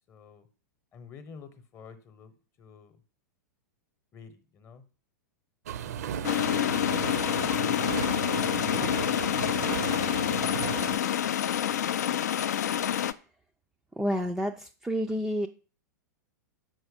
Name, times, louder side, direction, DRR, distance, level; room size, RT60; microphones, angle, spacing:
voice 1, 0.1-0.5 0.9-3.0 4.1-4.8 5.8-6.7, left 6 dB, 25° left, 12 dB, 0.9 m, -50 dB
sound 1, 5.7-11.0, right 9 dB, 60° right, 0.5 m, -35 dB
sound 2, 6.2-13.1, left 10 dB, 60° left, 0.4 m, -27 dB
voice 2, 14.0-15.5, equal, 5° right, 3 dB, 0.4 m, -29 dB
6.2 x 4.7 x 5.1 m, 0.37 s
figure-of-eight pair, 95°, 10 cm